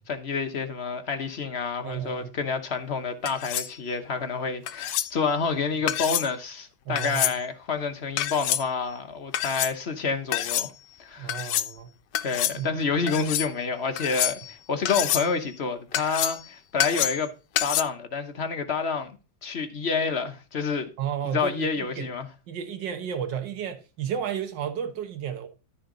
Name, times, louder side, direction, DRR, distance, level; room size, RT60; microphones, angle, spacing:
voice 1, 0.1-10.7 11.0-11.4 12.2-17.3 17.6-19.2 19.4-20.9 21.3-22.3, left 5 dB, 45° left, 1.0 m, -28 dB
voice 2, 1.8-2.3 6.8-7.3 11.2-11.9 12.5-12.7 21.0-22.1 22.5-25.5, right 8 dB, 85° right, 1.8 m, -32 dB
sound 1, 3.3-3.7 4.7-5.1 5.9-6.3 7.0-7.4 8.2-8.6 9.3-9.7 10.3-10.7 11.3-11.7 12.1-12.6 13.1-13.5 14.0-14.5 14.9-15.3 15.9-16.4 16.8-17.3 17.6-17.8, left 12 dB, 80° left, 1.2 m, -27 dB
13.5 x 4.5 x 3.8 m
omnidirectional pair, 1.9 m